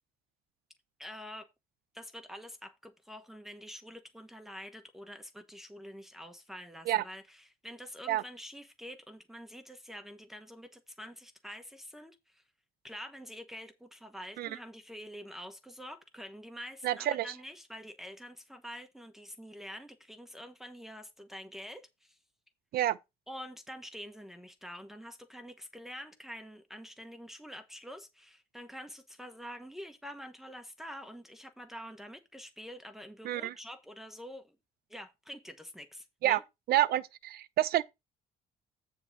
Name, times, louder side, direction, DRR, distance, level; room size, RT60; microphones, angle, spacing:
voice 1, 1.0-1.5 1.9-12.4 12.8-22.2 23.3-34.6 34.9-36.4, equal, ahead, 1.1 m, -47 dB
voice 2, 16.8-17.3 22.7-23.0 33.2-33.5 36.2-36.4 36.7-37.8, right 13 dB, 65° right, 0.7 m, -28 dB
8.9 x 3.6 x 6.5 m
cardioid pair, 110°, 17 cm